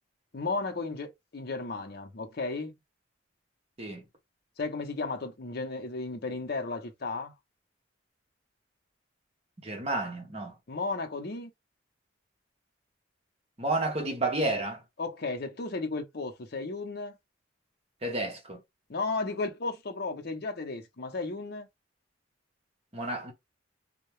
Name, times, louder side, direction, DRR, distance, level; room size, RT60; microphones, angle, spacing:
voice 1, 0.3-2.7 4.6-7.3 10.7-11.5 15.0-17.1 18.9-21.7, left 3 dB, 50° left, 0.6 m, -34 dB
voice 2, 9.6-10.5 13.6-14.8 18.0-18.6 22.9-23.3, right 2 dB, 30° right, 0.9 m, -31 dB
2.7 x 2.2 x 3.1 m
head